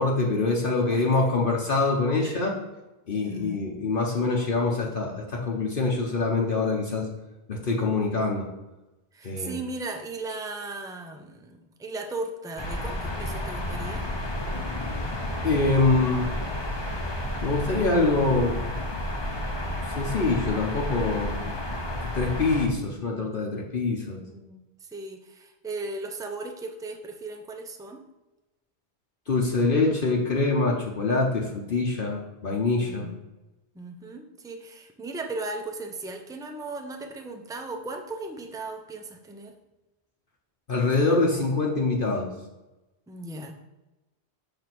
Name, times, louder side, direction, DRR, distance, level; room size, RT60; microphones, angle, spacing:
voice 1, 0.0-2.6 3.1-7.1 7.5-8.5 9.2-9.5 15.4-16.3 17.4-18.6 19.9-21.3 22.0-24.2 29.3-33.1 40.7-42.3, left 3 dB, 55° left, -2 dB, 1.1 m, -25 dB
voice 2, 0.7-1.1 2.2-2.4 3.2-3.7 9.1-14.1 24.2-28.0 32.8-33.2 33.7-39.5 43.1-43.5, right 2 dB, 5° right, 3 dB, 0.5 m, -37 dB
sound 1, 12.6-22.7, left 1 dB, 30° left, 0.8 m, -31 dB
6.8 x 3.5 x 6.0 m, 1.0 s
omnidirectional pair, 1.1 m